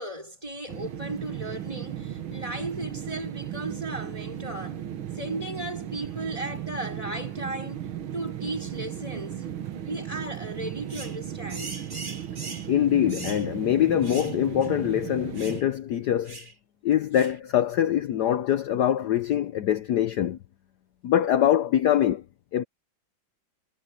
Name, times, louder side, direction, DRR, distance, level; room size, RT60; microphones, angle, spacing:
voice 1, 0.0-4.8 5.1-7.9 8.1-9.5 9.8-11.8, right 1 dB, 15° right, 5.7 m, -36 dB
sound 1, 0.7-15.6, right 10 dB, 85° right, 2.0 m, -36 dB
Colorado Magpie, 10.9-11.2 11.5-12.7 13.1-13.5 14.0-14.4 14.6-14.7 15.4-15.6 16.3-16.5 17.1-17.4, right 3 dB, 35° right, 3.7 m, -40 dB
voice 2, 12.7-16.4 16.8-20.4 21.0-22.2 22.5-22.6, left 11 dB, 65° left, 1.2 m, -23 dB
omnidirectional pair, 2.2 m